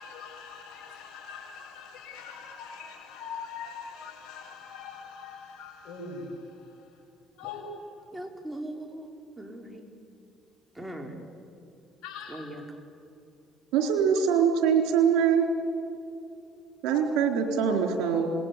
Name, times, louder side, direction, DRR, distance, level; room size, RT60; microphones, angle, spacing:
voice 1, 0.0-6.5 7.4-7.6 12.0-12.5, left 5 dB, 75° left, 2 dB, 6.8 m, -42 dB
voice 2, 8.1-9.9 10.7-11.1 12.3-12.6, right 1 dB, 10° right, 4 dB, 4.6 m, -40 dB
voice 3, 13.7-15.4 16.8-18.3, right 7 dB, 80° right, 5 dB, 4.1 m, -23 dB
26.5 x 20.5 x 8.5 m, 2.7 s
supercardioid pair, 80°, 0 cm